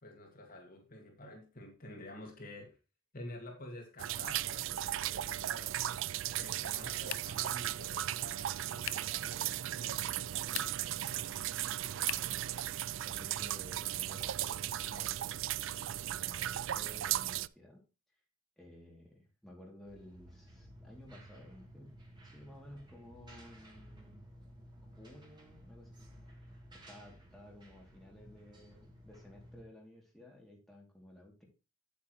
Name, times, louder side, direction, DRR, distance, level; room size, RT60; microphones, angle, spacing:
voice 1, 0.0-2.8 3.1-5.7 6.3-11.5, left 1 dB, 45° left, 2 dB, 2.0 m, -50 dB
sound 1, 4.0-17.5, right 12 dB, 65° right, 0.3 m, -36 dB
sound 2, 7.0-7.5 8.8-9.2 10.4-11.0 12.0-12.4, left 14 dB, 70° left, 0.4 m, -42 dB
voice 2, 12.0-12.6 13.0-17.8 18.6-22.0 22.2-24.3 24.8-26.1 26.7-31.5, left 1 dB, ahead, -3 dB, 2.7 m, -55 dB
sound 3, 19.9-29.6, equal, 20° right, 2.8 m, -55 dB
8.6 x 8.3 x 3.1 m, 0.31 s
head